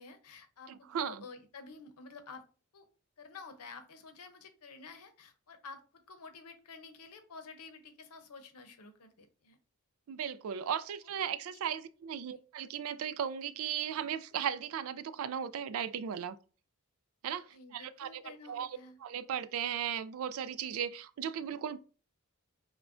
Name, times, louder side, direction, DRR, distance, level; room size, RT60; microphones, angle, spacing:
voice 1, 0.0-2.4 2.7-2.9 3.2-9.6 11.0-11.2 11.5-11.6 17.5-19.0, left 4 dB, 85° left, 0.7 m, -51 dB
voice 2, 0.7-1.2 10.1-16.4 17.2-18.7 19.0-21.8, right 8 dB, 70° right, 0.3 m, -36 dB
5.8 x 2.2 x 2.5 m
head